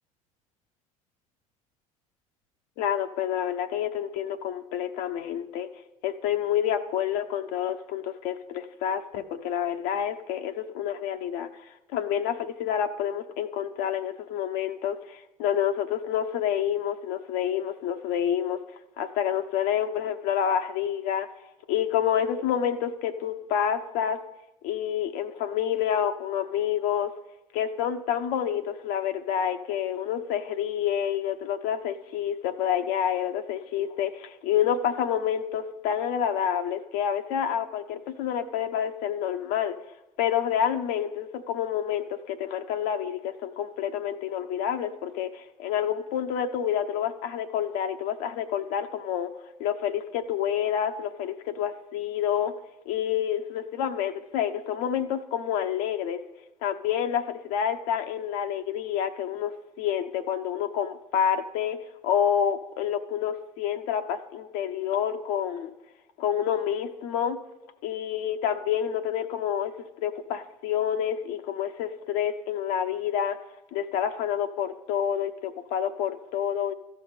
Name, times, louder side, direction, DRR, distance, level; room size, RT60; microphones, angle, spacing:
voice 1, 2.8-5.7 6.0-11.5 11.9-18.6 19.0-21.3 21.7-24.2 24.6-27.1 27.5-39.7 40.2-49.3 49.6-52.5 52.9-56.2 56.6-61.8 62.0-65.7 66.2-67.4 67.8-69.7 70.0-73.4 73.7-76.7, left 9 dB, 65° left, 0.9 m, -28 dB
13.5 x 5.5 x 9.4 m
hypercardioid pair, 65°, 18 cm